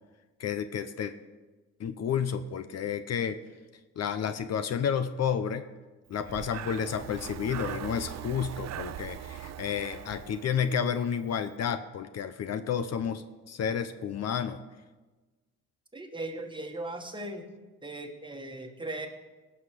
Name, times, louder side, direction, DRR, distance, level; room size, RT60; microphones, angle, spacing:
voice 1, 0.4-1.1 1.8-3.4 4.0-5.6 6.1-14.6, left 7 dB, 55° left, 11 dB, 0.7 m, -31 dB
Breathing, 6.2-11.1, right 11 dB, 60° right, 0.7 m, -41 dB
voice 2, 15.9-17.5 17.8-19.1, right 2 dB, 15° right, 4 dB, 1.5 m, -38 dB
17.0 x 5.8 x 6.7 m, 1.2 s
cardioid pair, 90°, 30 cm